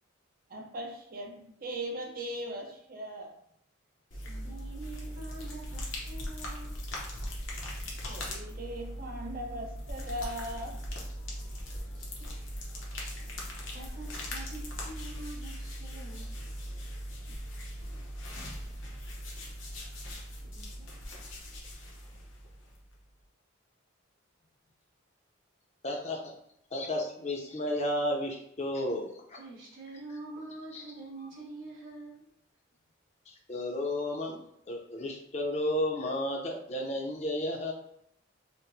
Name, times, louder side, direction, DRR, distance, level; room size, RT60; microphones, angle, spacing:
voice 1, 0.5-3.3 8.1-10.8, right 1 dB, 45° right, 2 dB, 0.5 m, -39 dB
sound 1, 4.1-23.0, equal, 75° left, 0.8 m, -40 dB
voice 2, 4.1-6.8 11.9-12.3 13.7-16.3 17.1-17.2 20.4-20.9 29.3-32.3, right 2 dB, 70° right, -5 dB, 1.2 m, -46 dB
voice 3, 25.8-26.3 26.7-29.4 30.7-30.8 33.5-34.4 34.7-37.7, left 1 dB, 35° left, 0 dB, 0.6 m, -32 dB
4.3 x 2.1 x 2.7 m, 0.72 s
head